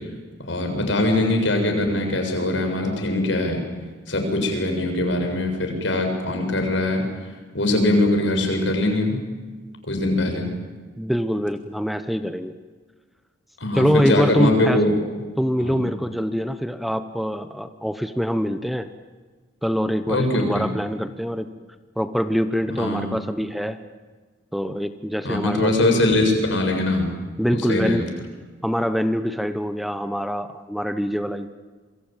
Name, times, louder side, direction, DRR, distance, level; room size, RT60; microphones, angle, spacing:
voice 1, 0.4-3.6 4.1-7.0 7.5-9.2 9.9-10.5 13.6-15.0 15.6-15.8 20.1-20.7 22.8-23.1 25.2-27.2 27.5-28.0, left 1 dB, 80° left, 4 dB, 7.2 m, -22 dB
voice 2, 11.0-12.6 13.7-14.8 15.4-18.9 19.6-21.5 22.0-23.8 24.5-26.0 27.4-28.2 28.6-31.5, equal, ahead, 10 dB, 1.0 m, -24 dB
27.5 x 23.5 x 9.2 m, 1.4 s
head